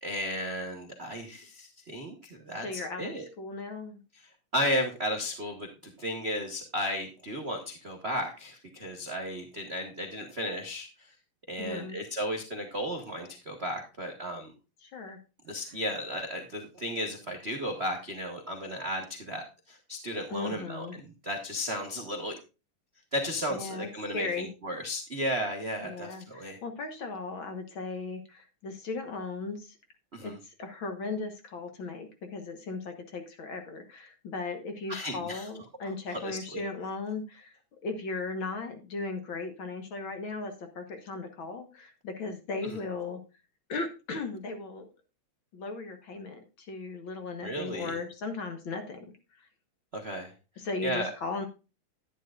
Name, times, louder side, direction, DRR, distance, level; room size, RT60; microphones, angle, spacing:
voice 1, 0.0-3.3 4.1-11.1 11.5-14.5 15.4-22.4 23.1-26.6 30.1-30.4 34.9-35.5 36.1-36.6 42.6-42.8 47.4-48.0 49.9-50.3 50.8-51.1, equal, 85° right, 3 dB, 0.5 m, -34 dB
voice 2, 2.6-4.0 11.6-12.0 14.8-15.2 20.3-21.0 23.5-23.9 24.1-24.5 25.8-29.8 30.2-37.5 37.8-43.2 43.7-44.9 45.5-49.1 49.4-49.5 50.6-51.5, left 3 dB, 55° left, 6 dB, 1.6 m, -37 dB
11.0 x 10.0 x 2.4 m, 0.29 s
omnidirectional pair, 3.4 m